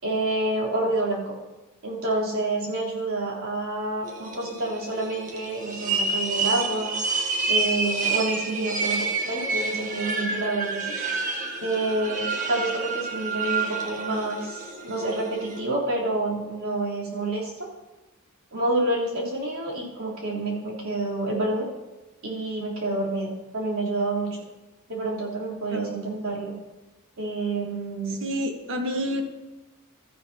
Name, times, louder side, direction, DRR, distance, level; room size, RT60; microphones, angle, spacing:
voice 1, 0.0-1.4 1.8-6.9 7.5-10.9 11.6-17.7 18.5-21.6 22.2-24.4 24.9-26.5 27.2-28.2, right 2 dB, 80° right, -5 dB, 3.4 m, -28 dB
sound 1, 4.0-15.6, right 4 dB, 40° right, 1.3 m, -29 dB
voice 2, 28.2-29.2, equal, 65° right, 4 dB, 1.2 m, -28 dB
13.5 x 10.5 x 2.8 m, 1.1 s
head